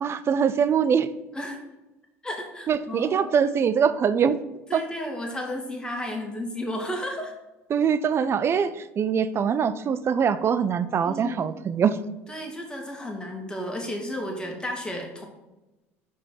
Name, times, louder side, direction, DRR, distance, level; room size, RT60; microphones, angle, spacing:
voice 1, 0.0-1.1 2.7-4.4 4.7-4.8 7.7-12.0, right 7 dB, 35° right, 13 dB, 0.6 m, -23 dB
voice 2, 2.2-3.5 4.7-7.3 11.0-11.4 12.3-15.3, left 1 dB, 10° left, 1 dB, 2.2 m, -33 dB
5.5 x 5.1 x 6.3 m, 1.0 s
hypercardioid pair, 70°, 7 cm